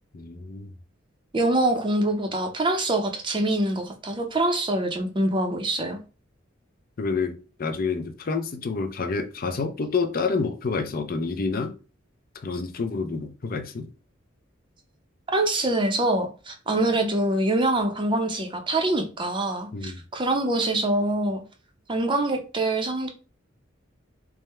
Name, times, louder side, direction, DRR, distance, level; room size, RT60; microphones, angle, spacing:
voice 1, 0.1-0.7 7.0-11.7 12.4-13.9 19.7-20.0, left 4 dB, 45° left, 0.5 m, -28 dB
voice 2, 1.3-6.0 15.3-21.4 21.9-23.1, right 2 dB, 25° right, 0.6 m, -24 dB
3.6 x 2.1 x 4.2 m
head